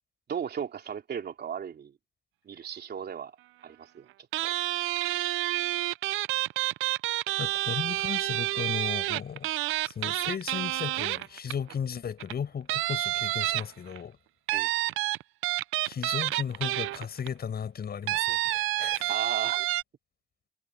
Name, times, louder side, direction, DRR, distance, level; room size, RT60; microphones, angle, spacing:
voice 1, 0.3-1.9 2.4-3.3 3.6-4.1 4.4-4.5 14.5-14.7 19.1-19.6, right 7 dB, 55° right, 3.2 m, -35 dB
sound 1, 4.3-11.7 12.2-12.3 12.7-14.0 14.5-17.3 18.1-19.8, right 17 dB, 90° right, 0.5 m, -29 dB
voice 2, 7.3-9.5 9.8-14.2 15.8-19.1, left 7 dB, 50° left, 7.3 m, -35 dB
cardioid pair, 90°, 20 cm